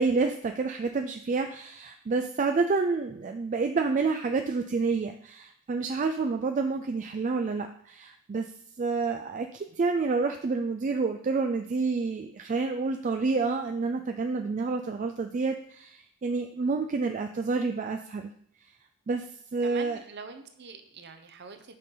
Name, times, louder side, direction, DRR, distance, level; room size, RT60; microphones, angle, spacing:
voice 1, 0.0-8.5 8.8-18.3 19.1-19.3 19.5-20.0, right 4 dB, 35° right, 5 dB, 0.3 m, -28 dB
voice 2, 19.6-21.7, right 4 dB, 50° right, 8 dB, 0.7 m, -44 dB
6.5 x 5.7 x 3.8 m, 0.65 s
head